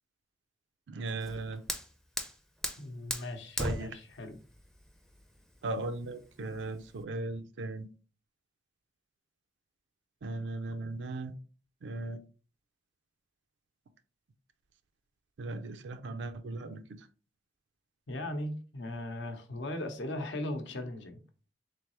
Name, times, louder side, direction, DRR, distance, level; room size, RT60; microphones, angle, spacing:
voice 1, 0.9-1.6 3.6-4.0 5.6-7.9 10.2-11.3 11.8-12.2 15.4-16.8, right 2 dB, 80° right, 0.4 m, -37 dB
Fire, 1.1-7.0, equal, 5° left, 0.4 m, -40 dB
voice 2, 2.8-4.4 18.1-21.2, left 1 dB, 85° left, 0.8 m, -38 dB
3.9 x 3.3 x 3.0 m
head